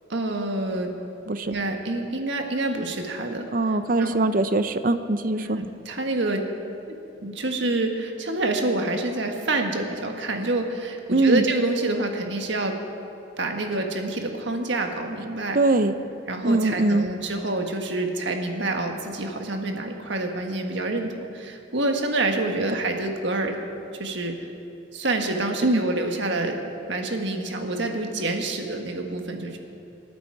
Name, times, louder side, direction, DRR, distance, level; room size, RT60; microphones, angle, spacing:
voice 1, 0.1-0.9 1.4-4.2 5.4-6.4 6.9-12.8 13.4-15.6 16.3-23.6 24.0-24.5 24.9-26.6 26.9-29.6, right 2 dB, 70° right, 3 dB, 1.6 m, -27 dB
voice 2, 3.5-5.6 11.1-11.4 15.5-16.0 16.4-17.1 25.6-25.8, right 2 dB, 45° right, 11 dB, 0.6 m, -21 dB
26.0 x 9.5 x 4.8 m, 2.8 s
head